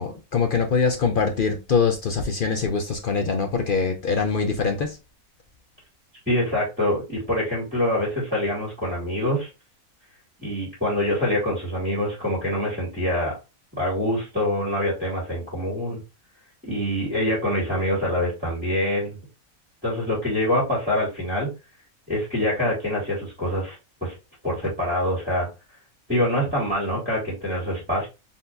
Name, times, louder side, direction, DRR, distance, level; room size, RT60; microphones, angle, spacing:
voice 1, 0.0-5.0, left 5 dB, 55° left, 0.6 m, -23 dB
voice 2, 6.3-9.5 10.4-13.3 13.8-16.0 16.6-19.2 19.8-21.5 22.1-23.8 24.0-24.1 24.4-25.5 26.1-28.1, left 1 dB, 5° right, 2.4 m, -25 dB
4.3 x 3.6 x 2.6 m
omnidirectional pair, 1.5 m